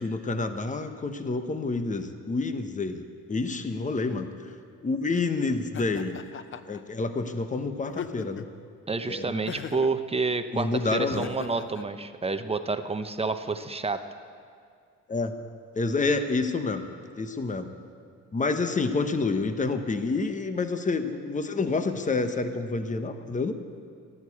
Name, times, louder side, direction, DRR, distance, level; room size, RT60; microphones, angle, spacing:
voice 1, 0.0-4.5 4.8-6.2 6.7-8.5 9.1-9.4 10.5-11.3 15.1-15.3 15.7-16.8 17.1-17.7 18.3-23.5, left 3 dB, 25° left, 8 dB, 1.1 m, -28 dB
Laughter, 5.7-6.8 7.8-8.6 9.5-10.0 11.1-11.9, left 8 dB, 40° left, 0.7 m, -39 dB
voice 2, 8.9-14.0, right 3 dB, 20° right, 9 dB, 0.8 m, -29 dB
14.0 x 11.0 x 8.4 m, 2.2 s
cardioid pair, 90°, 30 cm